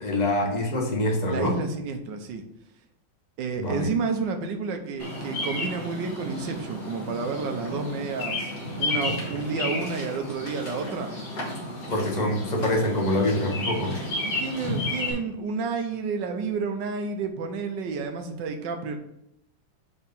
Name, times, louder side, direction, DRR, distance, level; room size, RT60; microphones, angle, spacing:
voice 1, 0.0-1.6 3.6-3.9 11.9-13.9, left 1 dB, 30° left, -1 dB, 0.9 m, -25 dB
voice 2, 1.3-2.4 3.4-8.5 8.8-11.1 14.2-19.0, right 4 dB, 75° right, 5 dB, 1.4 m, -30 dB
Bird vocalization bird call bird song, 5.0-15.1, left 2 dB, 50° left, 2.0 m, -32 dB
4.5 x 4.2 x 5.3 m, 0.79 s
omnidirectional pair, 2.0 m